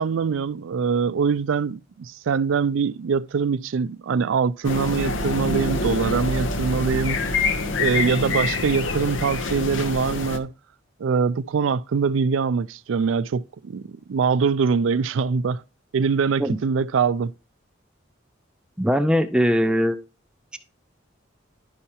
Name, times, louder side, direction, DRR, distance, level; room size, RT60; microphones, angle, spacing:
voice 1, 0.0-7.2 7.8-10.5 11.0-15.6 15.9-17.3, right 5 dB, 85° right, 0.4 m, -23 dB
sound 1, 4.6-10.4, left 3 dB, 85° left, 0.8 m, -26 dB
voice 2, 18.8-20.0, equal, 5° right, 0.4 m, -20 dB
11.0 x 5.6 x 2.8 m
head